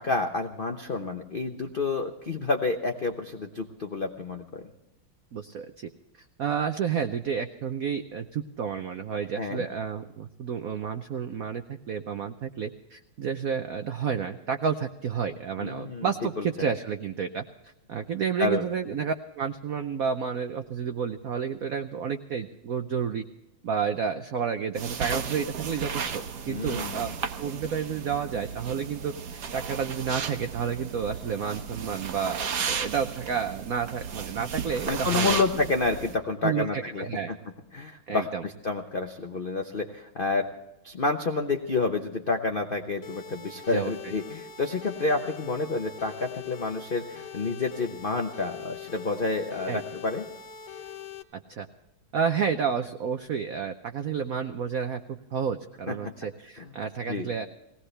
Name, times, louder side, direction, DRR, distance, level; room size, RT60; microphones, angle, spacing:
voice 1, 0.0-4.6 9.4-9.6 15.6-16.1 16.4-16.5 18.4-18.6 26.5-27.1 34.9-37.4 37.7-40.5 40.8-50.3 55.9-56.1 56.6-56.7 57.1-57.3, left 3 dB, 70° left, 4 dB, 0.5 m, -29 dB
voice 2, 5.3-5.9 6.4-23.2 23.6-27.1 27.4-29.1 29.5-35.4 36.4-37.3 38.1-38.4 43.7-44.1 49.7-49.8 51.5-51.7 52.1-55.0 55.3-57.5, right 7 dB, 80° right, 8 dB, 0.7 m, -30 dB
sound 1, 24.8-36.2, right 6 dB, 55° right, 1.4 m, -34 dB
sound 2, 43.0-51.2, left 7 dB, 55° left, 1.5 m, -42 dB
19.5 x 17.5 x 3.3 m, 0.90 s
omnidirectional pair, 2.4 m